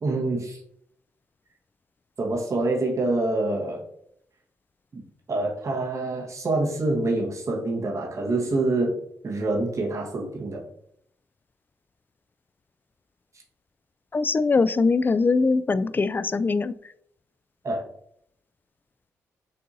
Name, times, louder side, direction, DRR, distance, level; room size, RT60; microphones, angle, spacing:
voice 1, 0.0-0.6 2.2-3.8 4.9-10.6 17.6-17.8, right 2 dB, 45° right, -1 dB, 1.3 m, -26 dB
voice 2, 14.1-16.7, left 4 dB, 30° left, 14 dB, 0.3 m, -22 dB
6.3 x 2.6 x 2.6 m, 0.69 s
hypercardioid pair, 45°, 7 cm